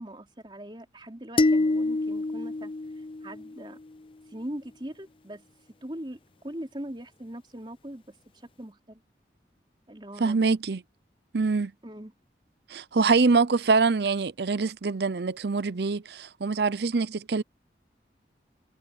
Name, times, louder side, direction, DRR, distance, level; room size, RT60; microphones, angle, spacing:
voice 1, 0.0-3.8 4.3-5.4 5.8-9.0 9.9-10.5 11.8-12.1, right 1 dB, 25° right, 3.5 m, -41 dB
sound 1, 1.4-3.8, left 2 dB, 30° left, 0.6 m, -26 dB
voice 2, 10.2-10.8 11.3-11.7 12.7-17.4, right 4 dB, 70° right, 0.6 m, -24 dB
head